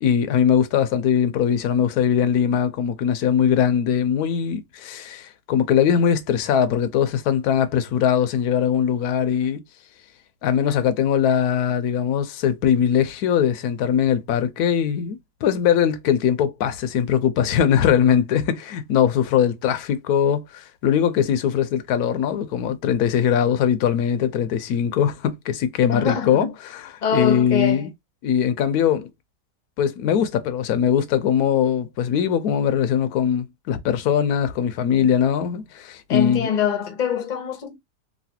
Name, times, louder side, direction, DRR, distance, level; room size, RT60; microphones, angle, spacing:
voice 1, 0.0-9.6 10.4-27.9 28.2-29.1 29.8-36.5, left 8 dB, 70° left, 1.1 m, -21 dB
voice 2, 25.9-26.5 27.0-27.9 34.9-35.1 36.1-37.8, left 7 dB, 40° left, 0.7 m, -24 dB
3.1 x 2.7 x 2.7 m
omnidirectional pair, 1.8 m